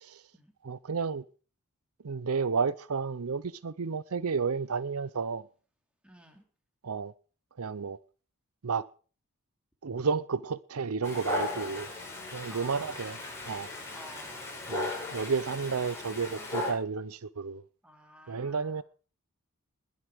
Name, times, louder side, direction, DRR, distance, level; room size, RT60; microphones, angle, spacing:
voice 1, 0.6-1.2 2.0-5.4 6.8-7.1 7.6-8.0 8.6-8.9 9.8-11.9 12.3-13.2 13.5-13.7 14.7-17.6 18.3-18.8, right 5 dB, 70° right, 0.6 m, -31 dB
voice 2, 6.0-6.4 12.5-13.0 13.9-14.4 17.8-18.8, equal, 5° right, 3.1 m, -51 dB
Dog, 11.0-16.7, left 2 dB, 10° left, 7.0 m, -37 dB
21.0 x 8.2 x 6.2 m
head